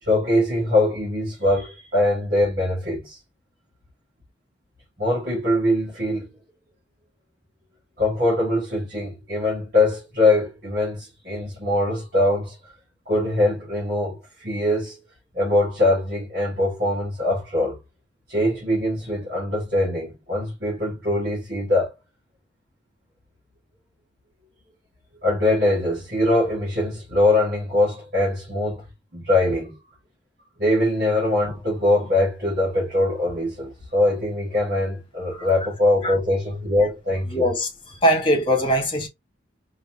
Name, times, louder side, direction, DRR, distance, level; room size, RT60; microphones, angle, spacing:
voice 1, 0.0-3.2 5.0-6.3 8.0-12.7 13.1-15.0 15.3-17.8 18.3-21.9 25.2-28.8 29.1-29.8 30.6-37.5, left 1 dB, 50° right, 1.9 m, -22 dB
voice 2, 37.3-39.1, equal, 25° left, 1.6 m, -21 dB
4.0 x 3.1 x 2.8 m
head